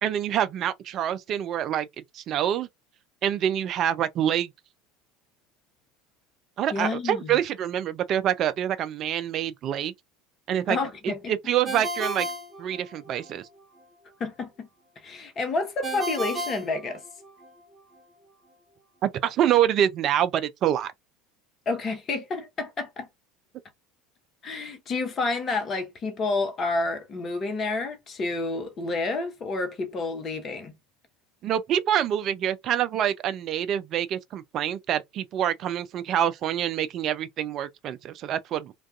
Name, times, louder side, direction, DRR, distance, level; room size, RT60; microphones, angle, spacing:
voice 1, 0.0-1.9 2.1-2.7 3.2-4.5 6.6-9.9 10.5-10.8 11.3-12.3 12.6-13.4 19.0-20.9 31.4-38.7, right 10 dB, 45° right, 0.3 m, -26 dB
voice 2, 6.7-7.4 10.7-11.3 14.2-14.7 15.0-17.0 21.7-23.1 24.4-30.7, left 3 dB, 35° left, 0.7 m, -29 dB
Ringtone, 11.6-13.3 15.8-17.5, right 1 dB, 20° right, 0.7 m, -33 dB
2.3 x 2.2 x 2.4 m
figure-of-eight pair, 70°, 0 cm